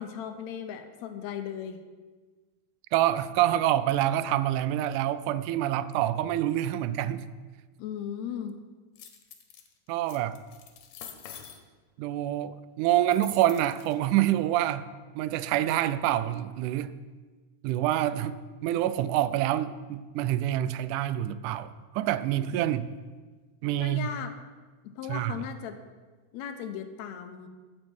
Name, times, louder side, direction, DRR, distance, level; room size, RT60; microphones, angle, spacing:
voice 1, 0.0-1.8 7.8-8.6 23.8-24.3 24.8-25.8 26.3-27.5, left 8 dB, 75° left, 8 dB, 1.9 m, -37 dB
voice 2, 2.9-7.3 9.9-10.4 12.0-14.9 15.2-16.9 17.6-22.9 23.6-24.1 25.1-25.4, right 12 dB, 85° right, 15 dB, 2.0 m, -27 dB
sound 1, 9.0-9.7 10.1-11.6 13.1-13.9, left 9 dB, 90° left, 2.5 m, -46 dB
15.0 x 5.6 x 6.1 m, 1.4 s
omnidirectional pair, 3.6 m